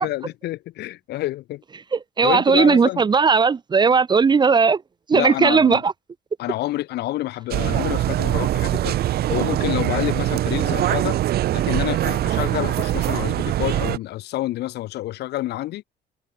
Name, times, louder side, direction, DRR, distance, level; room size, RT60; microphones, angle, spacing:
voice 1, 0.0-1.6 2.2-3.1 5.1-5.8 6.4-9.0 9.3-11.2 11.5-15.8, left 16 dB, 75° left, 5.6 m, -28 dB
voice 2, 2.2-4.8 5.1-5.9, right 5 dB, 25° right, 0.8 m, -17 dB
sound 1, 7.5-14.0, right 13 dB, 70° right, 2.6 m, -22 dB
cardioid pair, 110°, 17 cm